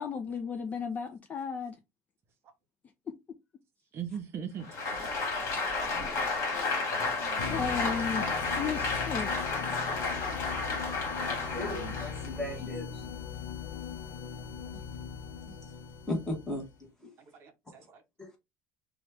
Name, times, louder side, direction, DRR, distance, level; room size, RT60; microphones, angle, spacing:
voice 1, 0.0-1.8 3.1-3.2 7.4-8.2 8.6-9.3, left 6 dB, 25° left, 0.3 m, -34 dB
voice 2, 3.9-4.7 7.2-7.9 8.3-8.4 11.5-12.1 17.4-18.0, right 8 dB, 40° right, 0.6 m, -41 dB
Applause, 4.6-12.4, left 3 dB, 50° left, 1.5 m, -32 dB
sound 1, 7.4-16.8, left 6 dB, 85° left, 0.6 m, -40 dB
voice 3, 11.3-13.0 16.1-16.6 18.2-18.4, left 1 dB, 10° left, 1.1 m, -36 dB
2.9 x 2.2 x 3.2 m
cardioid pair, 145°, 6 cm